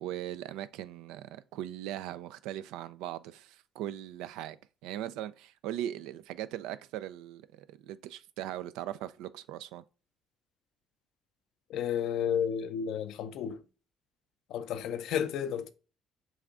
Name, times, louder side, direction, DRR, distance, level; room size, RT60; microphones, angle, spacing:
voice 1, 0.0-4.6 4.8-9.8, right 12 dB, 75° right, 0.3 m, -39 dB
voice 2, 11.7-13.7 14.5-15.7, left 8 dB, 70° left, 0.4 m, -32 dB
7.1 x 2.4 x 2.5 m
hypercardioid pair, 60°, 0 cm